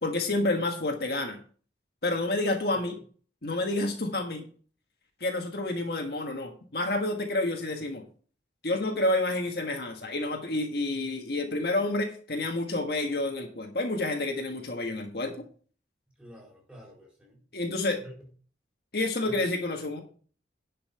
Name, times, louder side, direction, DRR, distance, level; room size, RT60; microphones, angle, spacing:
voice 1, 0.0-1.4 2.0-3.0 3.4-4.4 5.2-8.0 8.6-15.5 17.5-18.0 18.9-20.0, left 2 dB, 60° left, 3 dB, 1.6 m, -29 dB
voice 2, 16.2-17.4 18.0-18.3 19.2-19.5, equal, 5° right, -3 dB, 4.4 m, -48 dB
10.5 x 5.6 x 5.6 m, 0.42 s
head